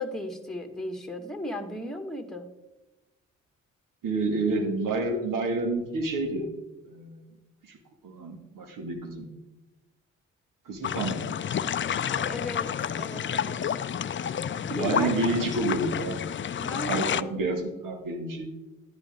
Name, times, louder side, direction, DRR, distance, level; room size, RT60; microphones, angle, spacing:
voice 1, 0.0-2.5 12.1-13.6 14.7-15.1 16.6-17.4, left 1 dB, ahead, 6 dB, 2.1 m, -35 dB
voice 2, 4.0-6.5 6.9-7.2 7.7-7.8 8.0-9.3 10.7-11.2 14.8-16.2 16.9-18.5, right 2 dB, 65° right, 3 dB, 2.5 m, -29 dB
sound 1, 10.8-17.2, left 8 dB, 35° left, 0.5 m, -30 dB
11.5 x 10.5 x 3.8 m, 1.0 s
hypercardioid pair, 40°, 35 cm